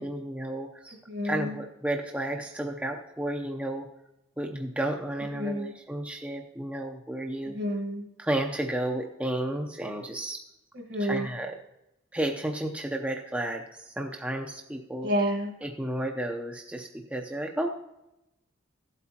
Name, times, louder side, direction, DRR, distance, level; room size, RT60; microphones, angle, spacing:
voice 1, 0.0-1.0 1.2-3.9 4.4-7.5 8.2-10.4 11.0-11.5 12.1-15.1 15.6-17.7, right 1 dB, 5° right, 2 dB, 0.6 m, -32 dB
voice 2, 1.1-1.6 5.3-5.7 7.4-8.1 10.7-11.3 15.0-15.5, equal, 55° right, 4 dB, 1.5 m, -29 dB
15.5 x 8.3 x 2.9 m, 0.89 s
head